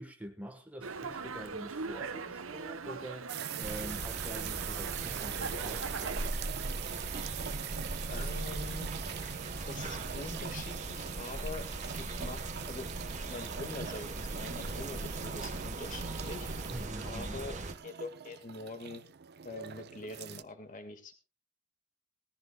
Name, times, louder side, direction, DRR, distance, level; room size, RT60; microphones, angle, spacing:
voice 1, 0.0-6.4 16.7-17.4, equal, 5° right, 1.4 m, -45 dB
Dog, 0.8-6.3, right 4 dB, 70° right, 1.0 m, -41 dB
sound 1, 3.3-20.4, right 9 dB, 50° right, 0.6 m, -42 dB
sound 2, 3.6-17.7, right 2 dB, 35° right, 1.4 m, -39 dB
voice 2, 8.1-8.9 9.7-11.7 12.0-12.9 13.3-16.5 17.0-17.6 17.8-19.0 19.5-21.1, left 2 dB, 40° left, 1.9 m, -44 dB
19.5 x 14.5 x 2.4 m
head